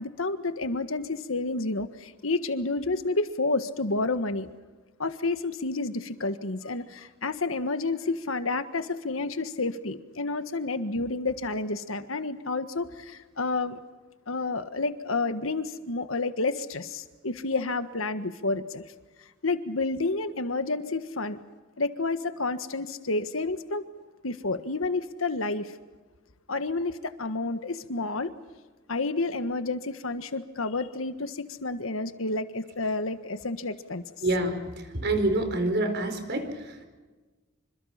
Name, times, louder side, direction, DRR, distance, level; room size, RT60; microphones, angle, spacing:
voice 1, 0.0-4.5 5.0-13.8 14.3-18.8 19.4-21.4 21.8-23.8 24.2-25.7 26.5-28.3 28.9-34.0, left 3 dB, 85° left, 10 dB, 1.5 m, -30 dB
voice 2, 34.2-36.9, right 2 dB, 55° right, 7 dB, 4.6 m, -27 dB
27.5 x 26.0 x 5.9 m, 1.3 s
head